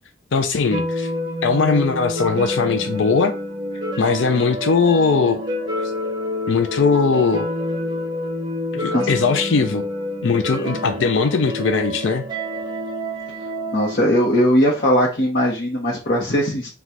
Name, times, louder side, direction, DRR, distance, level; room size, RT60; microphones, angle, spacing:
voice 1, 0.3-1.1 1.4-3.3 4.0-5.4 5.8-5.9 6.5-7.5 8.7-9.8 10.2-12.2, left 4 dB, 75° left, 0.5 m, -19 dB
sound 1, 0.7-14.0, left 1 dB, 20° right, 0.8 m, -28 dB
voice 2, 13.7-16.7, equal, 55° left, 1.0 m, -19 dB
4.1 x 2.4 x 4.5 m
head